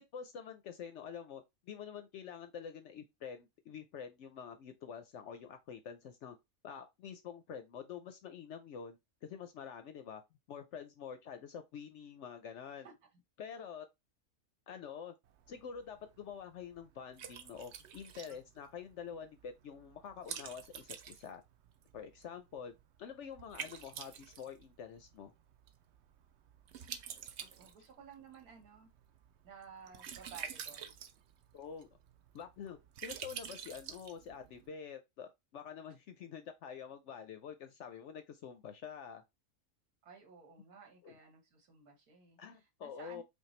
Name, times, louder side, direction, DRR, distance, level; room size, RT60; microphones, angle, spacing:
voice 1, 0.0-6.4 6.6-10.2 10.5-12.9 13.4-13.9 14.7-15.1 15.5-21.4 21.9-22.7 23.0-25.3 31.5-31.9 32.3-39.2 41.0-41.2 42.4-43.2, left 7 dB, 65° left, 0.7 m, -47 dB
Liquid, 15.2-34.7, right 8 dB, 65° right, 0.7 m, -50 dB
voice 2, 27.4-28.9 29.4-30.9 40.0-43.2, right 6 dB, 85° right, 1.8 m, -55 dB
5.3 x 2.3 x 3.1 m
omnidirectional pair, 1.6 m